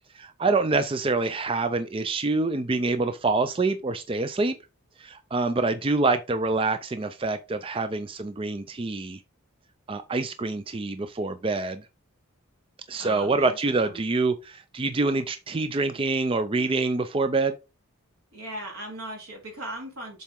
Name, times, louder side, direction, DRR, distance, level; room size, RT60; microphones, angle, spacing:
voice 1, 0.1-4.5 5.0-9.2 9.9-11.8 12.9-17.6, right 3 dB, 25° right, 0.4 m, -26 dB
voice 2, 12.9-14.0 18.3-20.2, right 1 dB, 85° right, 3.1 m, -38 dB
7.2 x 4.1 x 3.7 m
head